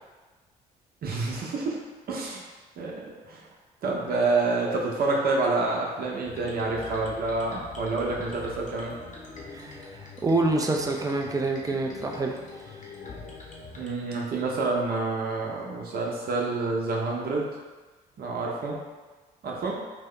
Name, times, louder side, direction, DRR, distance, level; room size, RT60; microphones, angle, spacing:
voice 1, 1.0-1.8 2.1-2.4 2.8-3.5 3.8-8.9 13.8-17.5 18.2-18.8 19.4-19.8, right 3 dB, 50° right, -2 dB, 0.8 m, -28 dB
sound 1, 6.2-13.9, left 3 dB, 40° left, 0.8 m, -43 dB
voice 2, 9.5-12.3, right 2 dB, 20° right, 1 dB, 0.5 m, -27 dB
2.8 x 2.2 x 3.7 m, 1.3 s
hypercardioid pair, 55°, 19 cm